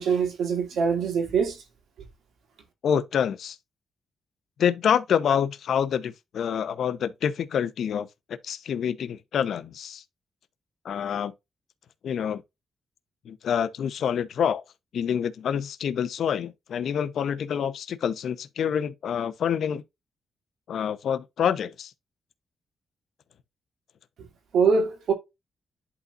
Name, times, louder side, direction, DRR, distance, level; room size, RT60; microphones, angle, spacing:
voice 1, 0.0-1.6 24.5-25.1, right 5 dB, 85° right, 2.7 m, -23 dB
voice 2, 2.8-3.6 4.6-8.1 8.4-10.0 10.8-11.3 12.0-12.4 13.2-14.6 14.9-19.8 20.7-21.9, left 8 dB, 70° left, 0.8 m, -27 dB
11.0 x 4.1 x 2.5 m
cardioid pair, 125°, 0 cm